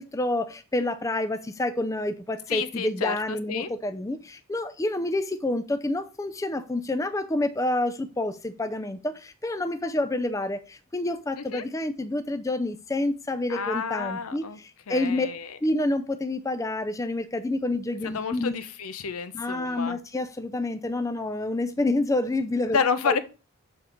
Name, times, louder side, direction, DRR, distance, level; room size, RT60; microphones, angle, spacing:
voice 1, 0.0-15.3 15.6-18.6 19.3-22.8 23.1-23.2, left 2 dB, 15° left, 0.4 m, -28 dB
voice 2, 2.5-3.7 11.4-11.6 13.5-14.6 14.9-15.6 18.1-20.0 22.7-23.2, left 6 dB, 75° left, 0.7 m, -30 dB
7.2 x 3.8 x 4.4 m
head